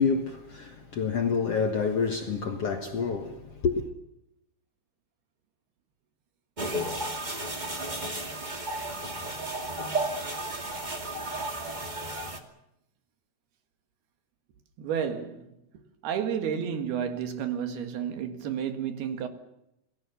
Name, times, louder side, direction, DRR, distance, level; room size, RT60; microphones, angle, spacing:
voice 1, 0.0-3.9, left 5 dB, 55° left, 1.8 m, -28 dB
sound 1, 6.6-12.4, right 1 dB, 15° right, 1.7 m, -33 dB
voice 2, 14.8-15.5 16.0-19.3, right 8 dB, 80° right, 3.9 m, -31 dB
28.5 x 19.5 x 7.0 m
omnidirectional pair, 4.5 m